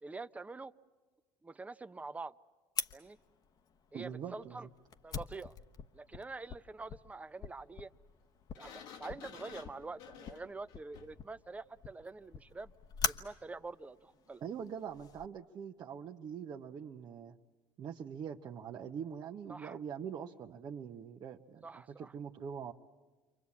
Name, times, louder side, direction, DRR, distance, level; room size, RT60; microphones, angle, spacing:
voice 1, 0.0-0.7 1.4-2.3 2.9-3.2 3.9-4.7 5.0-5.5 5.9-7.9 8.6-12.7 13.1-14.4 19.5-19.8 21.6-22.1, right 3 dB, 15° right, 13 dB, 0.8 m, -46 dB
Fire, 2.8-15.3, left 7 dB, 45° left, 1.2 m, -44 dB
voice 2, 3.9-4.7 14.4-17.4 17.8-22.7, right 7 dB, 45° right, 1 dB, 1.2 m, -43 dB
Sliding door, 8.5-11.3, left 8 dB, 75° left, 1.7 m, -52 dB
29.0 x 24.0 x 8.6 m, 1.3 s
supercardioid pair, 90°, 9 cm